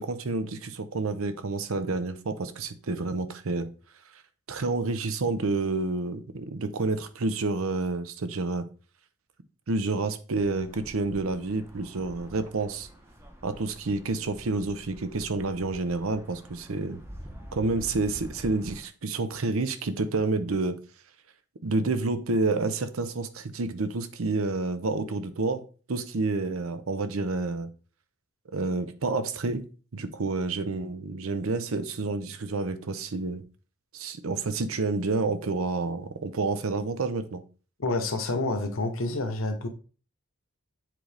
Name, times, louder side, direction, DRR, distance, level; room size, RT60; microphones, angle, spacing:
voice 1, 0.0-3.7 4.5-8.7 9.7-12.9 13.4-17.0 17.5-20.8 21.6-25.6 25.9-27.7 28.5-29.7 29.9-33.4 33.9-37.4, right 3 dB, 70° right, 11 dB, 0.7 m, -29 dB
sound 1, 10.4-18.9, equal, 10° right, 0.8 m, -46 dB
voice 2, 37.8-39.7, left 2 dB, 65° left, 6 dB, 0.9 m, -28 dB
7.6 x 3.9 x 3.4 m, 0.37 s
head